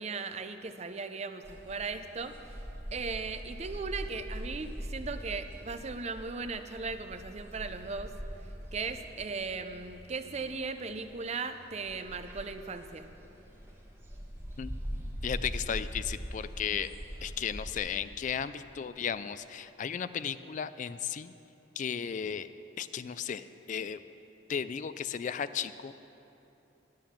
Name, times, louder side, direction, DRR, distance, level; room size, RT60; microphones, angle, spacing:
voice 1, 0.0-2.6 2.9-8.1 8.7-13.1, right 4 dB, 35° right, 9 dB, 0.5 m, -37 dB
sound 1, 1.4-17.8, equal, 15° right, 1.3 m, -43 dB
voice 2, 15.2-16.9 17.2-21.3 21.8-22.5 22.8-24.0 24.5-26.0, left 7 dB, 40° left, 14 dB, 0.3 m, -35 dB
11.0 x 9.1 x 7.3 m, 3.0 s
head